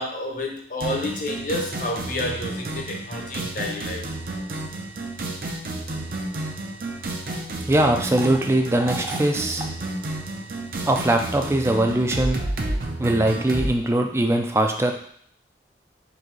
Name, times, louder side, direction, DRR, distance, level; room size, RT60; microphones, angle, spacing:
voice 1, 0.0-4.1 6.7-6.8, left 1 dB, 45° left, 1 dB, 0.8 m, -30 dB
sound 1, 0.8-13.7, right 2 dB, 50° right, 0.6 m, -31 dB
voice 2, 7.7-9.6 10.9-12.4 13.0-15.1, right 1 dB, 15° right, 4 dB, 0.4 m, -21 dB
4.0 x 2.8 x 4.6 m, 0.63 s
head